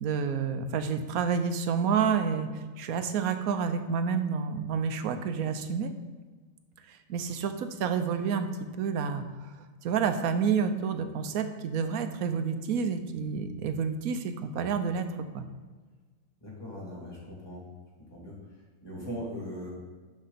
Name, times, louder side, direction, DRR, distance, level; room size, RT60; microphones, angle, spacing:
voice 1, 0.0-5.9 6.9-8.5 8.8-9.3 9.8-15.5, right 6 dB, 85° right, 9 dB, 1.1 m, -29 dB
voice 2, 16.4-17.6 18.1-18.3 18.8-19.7, equal, 15° left, -4 dB, 2.6 m, -39 dB
11.5 x 4.5 x 4.2 m, 1.4 s
omnidirectional pair, 1.5 m